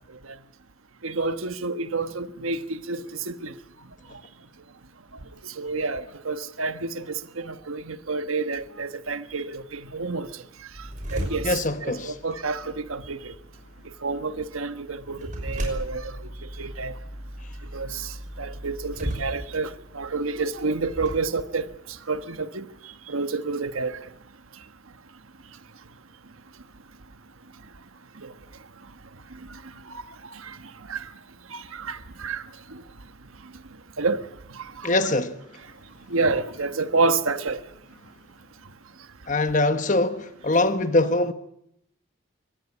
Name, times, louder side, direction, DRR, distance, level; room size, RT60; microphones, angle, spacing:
voice 1, 1.0-3.5 5.4-10.4 10.8-13.3 13.8-16.9 17.7-24.0 28.2-28.3 29.3-29.6 29.9-30.6 30.9-31.1 31.5-32.8 34.0-34.2 34.5-34.9 36.1-37.6, right 3 dB, 85° right, 1.3 m, -29 dB
sound 1, 10.7-21.2, equal, 35° right, 5.7 m, -37 dB
voice 2, 11.4-12.2 34.8-35.4 39.3-41.3, left 2 dB, 35° left, 1.2 m, -23 dB
23.5 x 18.5 x 8.5 m
head